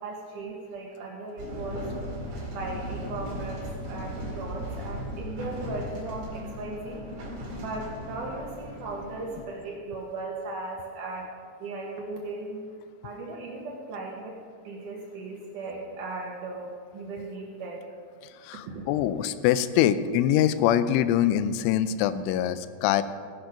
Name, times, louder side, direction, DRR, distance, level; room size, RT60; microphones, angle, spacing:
voice 1, 0.0-2.0 2.5-7.1 7.6-11.3 11.6-12.7 13.0-17.8 18.7-18.8, right 2 dB, 90° right, -1 dB, 1.8 m, -37 dB
sound 1, 1.4-9.4, equal, 40° right, 2.7 m, -37 dB
voice 2, 18.2-23.0, left 11 dB, 85° left, 13 dB, 3.0 m, -24 dB
16.0 x 10.5 x 5.2 m, 2.1 s
omnidirectional pair, 5.7 m